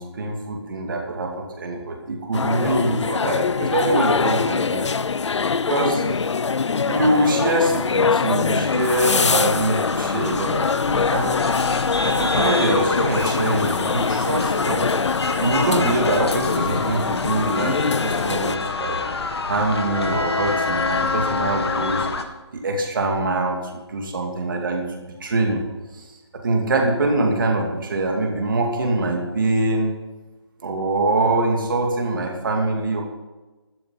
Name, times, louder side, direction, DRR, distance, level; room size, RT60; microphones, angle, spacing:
voice 1, 0.0-4.9 5.3-6.0 6.9-11.4 12.0-14.9 15.3-19.0 19.4-22.1 22.5-25.6 25.9-29.9 30.6-33.0, right 2 dB, 45° right, 1 dB, 2.6 m, -24 dB
sound 1, 2.3-18.6, left 5 dB, 80° left, 0.6 m, -23 dB
sound 2, 8.7-22.2, left 3 dB, 65° left, 1.8 m, -27 dB
13.0 x 12.0 x 6.0 m, 1.2 s
hypercardioid pair, 170°, 15 cm